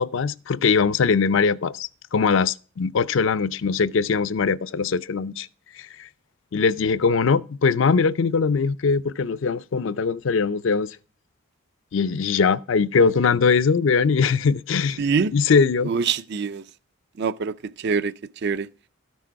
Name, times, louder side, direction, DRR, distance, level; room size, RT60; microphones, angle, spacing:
voice 1, 0.0-5.5 5.8-6.1 6.5-10.9 11.9-15.0 15.3-15.9, left 5 dB, 65° left, 0.5 m, -21 dB
voice 2, 15.0-15.3 15.8-16.6 17.2-18.1 18.4-18.7, right 5 dB, 55° right, 0.4 m, -24 dB
13.0 x 6.2 x 4.5 m
head